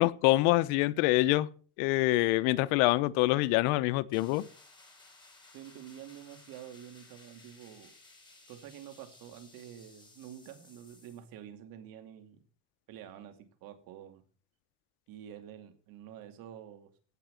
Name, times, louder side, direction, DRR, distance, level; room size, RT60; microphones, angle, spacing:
voice 1, 0.0-1.5 1.8-4.4, left 18 dB, 90° left, 0.9 m, -25 dB
sound 1, 4.1-11.3, left 2 dB, 10° left, 4.6 m, -58 dB
voice 2, 5.5-7.9 8.5-12.4 12.9-14.2 15.1-16.9, right 10 dB, 65° right, 2.7 m, -48 dB
16.5 x 5.9 x 6.8 m
cardioid pair, 125°, 36 cm